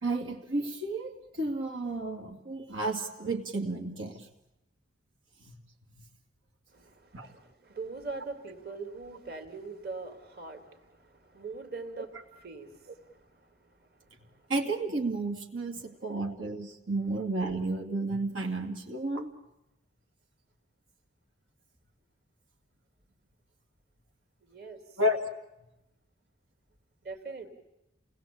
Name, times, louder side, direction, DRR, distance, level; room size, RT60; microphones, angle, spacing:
voice 1, 0.0-4.3 7.1-7.3 14.5-19.3 25.0-25.2, right 2 dB, 85° right, 1 dB, 2.7 m, -32 dB
voice 2, 6.7-14.5 24.4-24.8 27.0-27.5, right 3 dB, 50° right, 5 dB, 3.3 m, -43 dB
28.5 x 19.5 x 8.7 m, 0.92 s
head